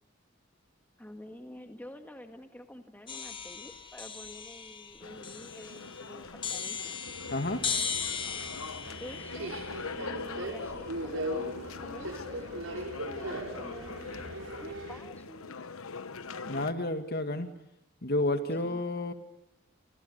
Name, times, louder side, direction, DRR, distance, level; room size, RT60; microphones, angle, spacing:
voice 1, 1.0-6.8 9.0-9.6 9.9-15.5 18.6-18.8, left 1 dB, 10° left, 6 dB, 1.8 m, -48 dB
sound 1, 3.1-11.0, left 6 dB, 25° left, 1.6 m, -38 dB
sound 2, 5.0-16.7, left 4 dB, 85° left, 1.1 m, -43 dB
Subway metro underground, 7.1-15.0, right 1 dB, 75° right, 5.9 m, -39 dB
voice 2, 7.3-7.7 16.5-17.5 18.0-19.1, left 1 dB, 50° left, 8 dB, 2.2 m, -30 dB
29.5 x 28.0 x 6.8 m, 0.83 s
head